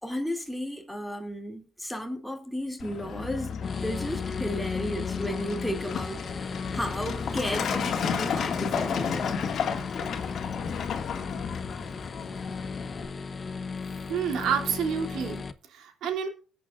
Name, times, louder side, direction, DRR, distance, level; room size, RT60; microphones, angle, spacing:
voice 1, 0.0-3.6 3.8-9.4, equal, ahead, 2.5 m, -34 dB
Truck, 2.8-13.1, left 7 dB, 65° left, 2.0 m, -32 dB
sound 1, 3.6-15.5, left 4 dB, 40° left, 0.9 m, -36 dB
voice 2, 14.1-16.3, right 7 dB, 85° right, 2.8 m, -29 dB
20.5 x 8.6 x 2.5 m
cardioid pair, 90°, 0 cm